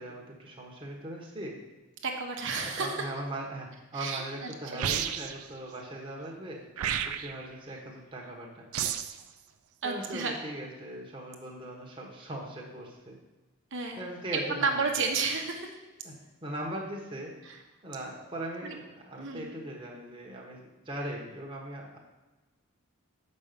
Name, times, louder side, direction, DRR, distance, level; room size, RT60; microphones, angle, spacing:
voice 1, 0.0-1.6 2.6-6.6 7.0-8.7 9.8-13.2 13.9-14.8 16.0-16.1 16.4-17.3 17.8-22.0, right 1 dB, 25° right, -2 dB, 1.3 m, -39 dB
voice 2, 2.0-3.1 3.9-4.8 9.8-10.3 13.7-14.0 14.3-15.7 17.4-17.6 18.6-18.8 19.2-19.5, right 4 dB, 55° right, 3 dB, 1.2 m, -32 dB
sound 1, 4.8-5.5 6.8-7.5 8.7-9.2, right 9 dB, 80° right, 0.5 m, -31 dB
6.8 x 5.4 x 6.9 m, 1.2 s
head